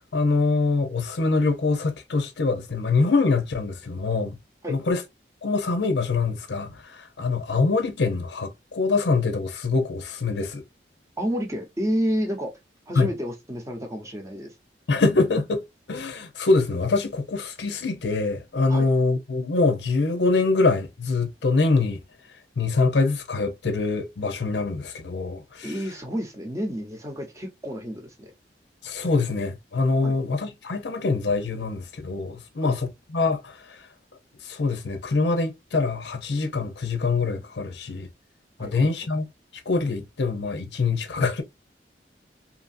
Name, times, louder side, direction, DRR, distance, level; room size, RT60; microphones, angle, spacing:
voice 1, 0.1-4.4 4.7-5.0 5.4-10.6 13.0-13.1 14.9-15.6 15.9-22.0 22.6-25.7 28.8-33.8 34.4-38.1 38.6-39.3 39.7-41.4, left 3 dB, 80° left, 0.6 m, -24 dB
voice 2, 11.2-12.6 12.9-14.5 18.7-18.9 25.6-28.3 30.0-30.2 32.6-32.7 38.6-38.9, equal, 15° right, 0.8 m, -30 dB
2.7 x 2.6 x 2.5 m
head